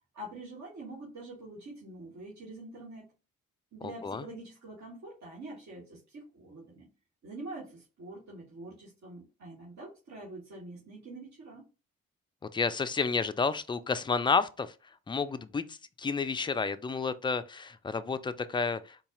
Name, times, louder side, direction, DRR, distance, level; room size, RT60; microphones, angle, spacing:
voice 1, 0.1-3.1 3.7-6.9 7.2-11.6, right 2 dB, 50° right, 1.5 m, -45 dB
voice 2, 3.8-4.2 12.5-14.7 15.1-19.0, left 4 dB, 15° left, 0.3 m, -31 dB
4.0 x 2.3 x 3.8 m
hypercardioid pair, 40°, 37 cm